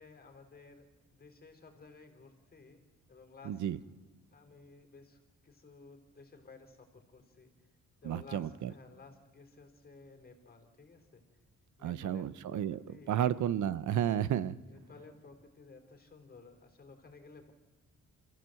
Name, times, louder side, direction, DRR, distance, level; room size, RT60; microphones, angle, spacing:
voice 1, 0.0-2.8 3.1-3.6 4.3-7.7 8.0-11.4 11.8-13.2 14.0-14.2 14.7-17.5, left 4 dB, 30° left, 4 dB, 3.9 m, -55 dB
voice 2, 3.4-3.8 8.0-8.7 11.8-12.8 13.1-14.5, right 10 dB, 80° right, 17 dB, 0.9 m, -32 dB
27.5 x 15.0 x 7.8 m, 1.3 s
cardioid pair, 115°, 29 cm